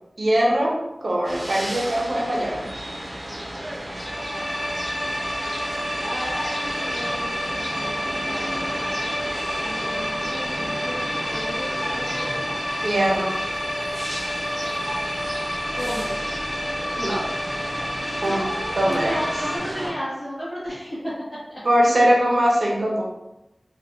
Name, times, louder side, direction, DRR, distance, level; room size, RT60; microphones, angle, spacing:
voice 1, 0.2-2.7 12.8-13.4 16.9-17.3 18.2-18.5 18.7-19.1 21.6-23.0, equal, 75° right, -4 dB, 0.8 m, -21 dB
sound 1, 1.2-19.9, right 1 dB, 40° right, 0.7 m, -33 dB
sound 2, 3.9-19.6, equal, 75° left, 1.3 m, -29 dB
voice 2, 6.0-8.8 9.6-12.5 15.7-16.2 18.1-21.1 21.5-21.6, equal, 45° left, -13 dB, 1.3 m, -33 dB
3.5 x 2.4 x 2.5 m, 0.92 s
wide cardioid pair, 50°, 0 cm